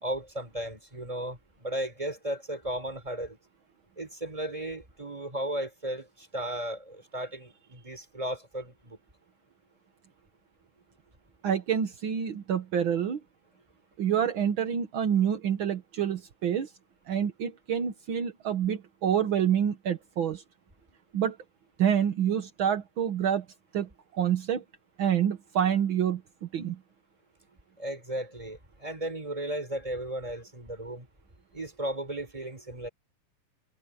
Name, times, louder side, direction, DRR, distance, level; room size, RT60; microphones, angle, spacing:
voice 1, 0.0-3.4 4.0-9.0 27.8-31.1 31.5-32.9, right 1 dB, 10° right, 4.7 m, -35 dB
voice 2, 11.4-13.2 14.0-16.7 17.1-20.4 21.1-21.4 21.8-23.4 23.7-24.6 25.0-26.8, right 8 dB, 65° right, 1.2 m, -27 dB
omnidirectional pair, 4.0 m